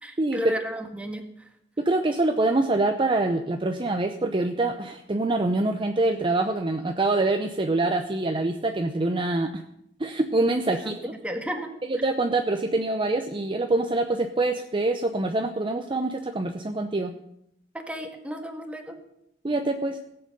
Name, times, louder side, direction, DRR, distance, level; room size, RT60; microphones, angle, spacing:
voice 1, 0.0-1.5 10.7-10.9 11.2-11.7 17.7-19.0, equal, 5° right, 4 dB, 1.5 m, -33 dB
voice 2, 1.8-9.6 10.0-11.1 11.9-17.1 19.4-20.0, right 2 dB, 25° right, 6 dB, 0.7 m, -25 dB
17.0 x 7.8 x 6.8 m, 0.78 s
head